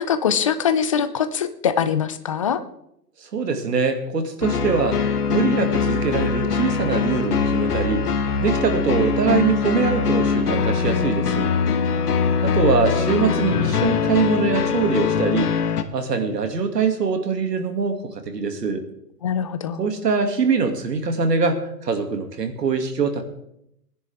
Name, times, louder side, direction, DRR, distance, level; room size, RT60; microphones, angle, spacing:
voice 1, 0.0-2.6 11.7-11.8 19.2-19.8, left 8 dB, 20° left, 12 dB, 0.5 m, -22 dB
voice 2, 3.2-5.0 5.3-8.1 8.4-11.5 12.4-15.5 15.9-18.8 19.8-23.2, right 5 dB, 80° right, 6 dB, 2.5 m, -23 dB
sound 1, 4.4-15.8, left 6 dB, 70° left, 1.5 m, -22 dB
19.5 x 10.5 x 3.5 m, 0.77 s
hypercardioid pair, 140°, 48 cm